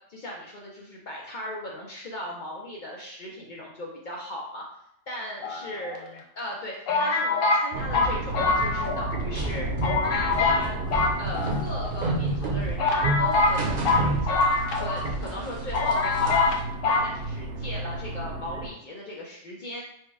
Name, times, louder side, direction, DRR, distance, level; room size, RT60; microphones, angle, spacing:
voice 1, 0.1-4.6 5.1-6.0 6.4-9.7 10.1-10.7 11.2-16.6 16.9-19.8, left 1 dB, 80° left, -3 dB, 0.4 m, -37 dB
sound 1, 5.4-6.2 6.9-9.2 9.4-9.5 9.8-10.6 10.9-11.9 12.4-12.5 12.8-15.1 15.4-15.5 15.7-16.6 16.8-17.1, left 3 dB, 60° left, 0.9 m, -24 dB
sound 2, 7.7-18.7, right 2 dB, 75° right, 1.2 m, -33 dB
sound 3, 9.4-14.8 15.0-16.6, right 2 dB, 40° right, 0.8 m, -30 dB
4.6 x 2.2 x 4.6 m, 0.75 s
omnidirectional pair, 1.7 m